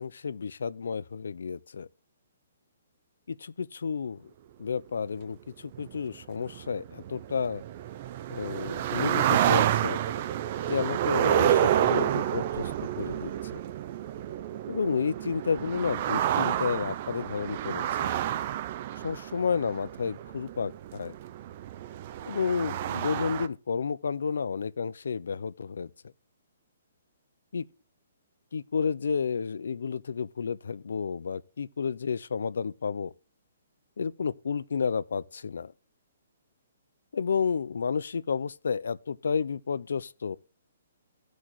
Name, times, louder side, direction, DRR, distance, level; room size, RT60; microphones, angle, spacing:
voice 1, 0.0-1.9 3.3-4.3 4.6-7.6 8.3-10.0 10.7-13.3 14.7-18.1 19.0-21.1 22.3-26.1 27.5-27.7 28.5-33.1 34.0-35.7 37.1-40.4, left 6 dB, 85° left, 0.4 m, -31 dB
sound 1, 5.7-23.5, right 11 dB, 30° right, 0.4 m, -29 dB
15.0 x 6.2 x 3.1 m
hypercardioid pair, 175°, 0 cm